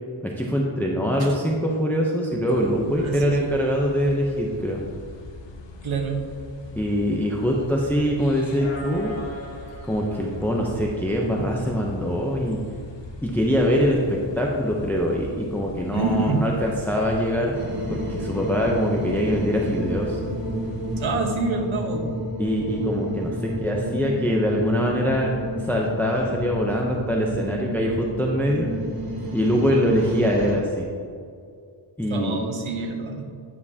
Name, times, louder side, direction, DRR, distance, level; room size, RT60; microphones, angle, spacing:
voice 1, 0.2-4.8 6.8-9.1 9.8-12.6 13.2-17.6 17.9-20.2 22.4-25.3 25.6-28.7 29.3-30.9 32.0-32.4, equal, 5° left, -2 dB, 0.6 m, -23 dB
voice 2, 1.0-1.4 3.0-3.6 5.8-6.3 15.9-16.4 21.0-22.1 32.1-33.2, right 4 dB, 90° right, 3 dB, 1.1 m, -27 dB
sound 1, 2.5-21.2, left 3 dB, 65° left, 0.8 m, -41 dB
sound 2, 7.2-8.2 8.6-11.3, equal, 90° left, 1.8 m, -40 dB
sound 3, 17.5-30.5, right 1 dB, 50° right, 1.5 m, -30 dB
9.6 x 7.1 x 2.8 m, 2.3 s
wide cardioid pair, 145°, 47 cm